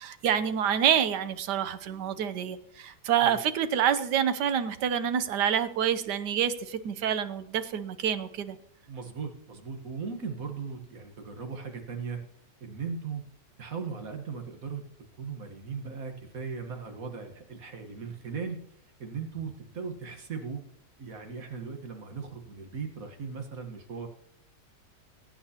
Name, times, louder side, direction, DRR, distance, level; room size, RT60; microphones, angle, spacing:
voice 1, 0.0-8.6, right 9 dB, 75° right, 11 dB, 1.4 m, -27 dB
voice 2, 8.9-12.2 12.6-13.2 13.6-14.9 15.2-18.6 19.0-20.6 21.0-24.1, right 5 dB, 55° right, 4 dB, 1.8 m, -38 dB
21.5 x 9.1 x 2.9 m, 0.67 s
omnidirectional pair, 1.9 m